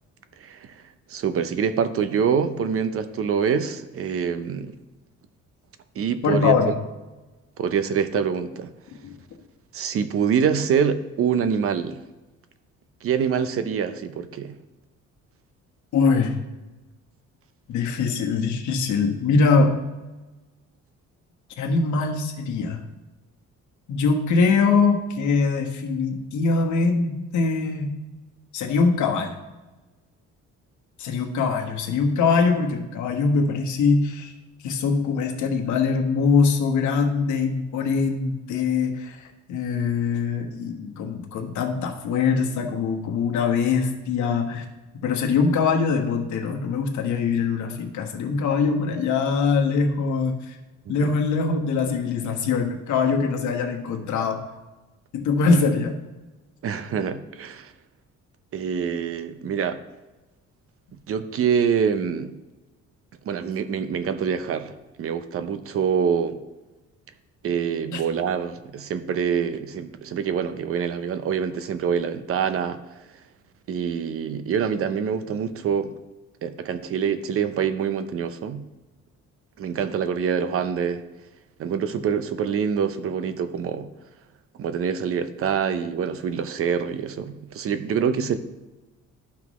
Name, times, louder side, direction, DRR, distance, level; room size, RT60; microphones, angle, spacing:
voice 1, 0.4-0.7 1.1-4.7 6.0-6.5 7.6-8.7 9.7-12.0 13.0-14.6 56.6-57.7 58.5-59.8 61.1-62.3 63.2-64.7 65.0-66.4 67.4-72.8 73.7-75.9 76.4-78.6 79.6-81.0 81.6-83.9 84.6-88.4, right 7 dB, 45° right, 10 dB, 0.6 m, -25 dB
voice 2, 6.2-6.7 9.0-9.1 15.9-16.4 17.7-19.7 21.6-22.8 23.9-27.9 28.5-29.4 31.0-34.3 34.6-44.6 45.0-50.6 50.9-54.4 55.1-55.9 67.9-68.0, left 4 dB, 70° left, 3 dB, 1.3 m, -22 dB
12.5 x 6.0 x 3.1 m, 1.1 s
cardioid pair, 155°, 30 cm